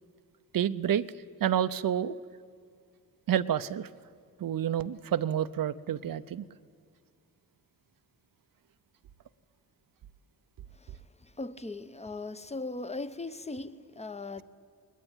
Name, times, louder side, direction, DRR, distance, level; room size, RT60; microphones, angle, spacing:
voice 1, 0.5-1.0 1.4-2.1 3.3-3.9 4.4-6.4, right 10 dB, 60° right, 0.7 m, -29 dB
voice 2, 11.4-14.4, left 3 dB, 15° left, 0.9 m, -38 dB
20.0 x 20.0 x 9.0 m
cardioid pair, 65°, 39 cm